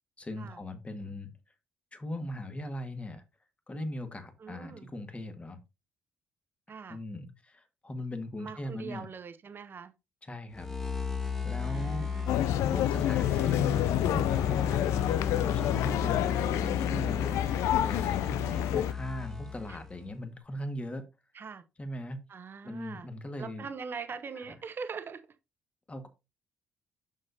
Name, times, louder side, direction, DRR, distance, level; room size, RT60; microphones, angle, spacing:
voice 1, 0.2-1.3 1.9-3.2 3.7-5.6 6.9-9.1 10.2-10.7 11.4-12.1 12.7-14.9 15.4-17.4 17.8-21.0 21.8-22.2 22.6-23.7 25.9-26.1, left 1 dB, 25° left, 1.7 m, -39 dB
voice 2, 4.4-4.9 6.7-7.0 8.4-9.9 11.6-12.4 19.7-19.8 21.3-21.6 22.3-23.1 23.4-25.2, right 5 dB, 45° right, 1.0 m, -42 dB
sound 1, 10.5-20.0, left 6 dB, 10° left, 1.3 m, -34 dB
sound 2, 12.3-18.9, left 13 dB, 65° left, 0.4 m, -29 dB
7.4 x 6.3 x 2.7 m
hypercardioid pair, 45°, 5 cm